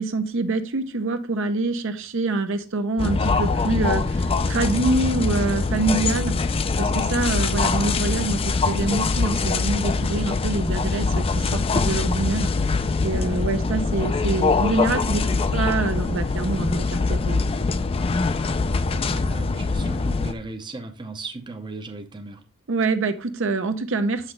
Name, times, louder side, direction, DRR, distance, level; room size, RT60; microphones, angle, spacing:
voice 1, 0.0-6.4 6.8-12.5 13.0-17.4 22.7-24.3, right 3 dB, 65° right, 8 dB, 0.7 m, -25 dB
sound 1, 3.0-20.3, left 4 dB, 25° left, 0.4 m, -23 dB
voice 2, 19.1-22.4, right 2 dB, 20° right, 6 dB, 0.6 m, -36 dB
7.1 x 5.7 x 3.2 m, 0.36 s
head